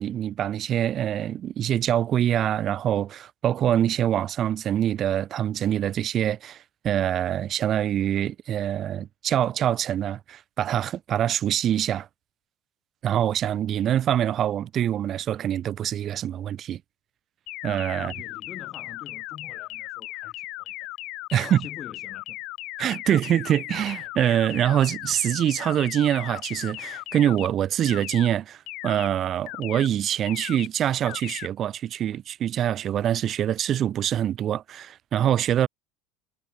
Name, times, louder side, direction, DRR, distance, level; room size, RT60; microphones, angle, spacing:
voice 1, 0.0-12.1 13.0-16.8 17.6-18.1 21.3-21.7 22.8-35.7, right 10 dB, 40° right, 0.6 m, -25 dB
sound 1, 17.5-27.5 27.9-28.3 28.7-29.1 29.5-29.9 30.3-30.7 31.1-31.5, left 20 dB, 60° left, 0.4 m, -37 dB
voice 2, 18.0-20.9 21.3-22.4, left 8 dB, 35° left, 6.1 m, -45 dB
supercardioid pair, 120°, 0 cm